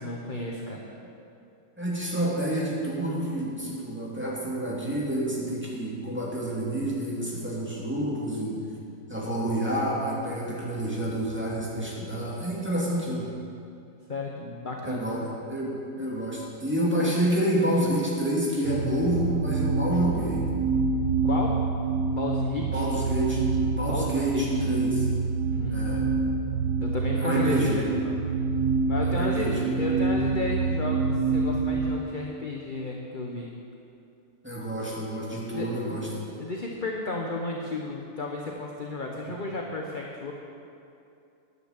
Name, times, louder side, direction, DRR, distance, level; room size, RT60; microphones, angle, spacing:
voice 1, 0.0-0.8 14.1-15.1 21.2-21.8 22.1-22.9 23.8-24.6 25.5-26.3 26.8-28.1 28.9-33.5 35.5-36.0 36.4-40.3, left 2 dB, 35° left, 0 dB, 0.9 m, -33 dB
voice 2, 1.8-8.6 9.1-13.3 14.8-20.5 22.7-25.1 25.7-26.1 27.2-27.9 29.0-29.8 34.4-36.2, right 1 dB, 5° right, -6 dB, 2.4 m, -29 dB
sound 1, 18.6-32.0, right 4 dB, 65° right, 1.1 m, -26 dB
9.9 x 9.4 x 8.2 m, 2.5 s
omnidirectional pair, 2.0 m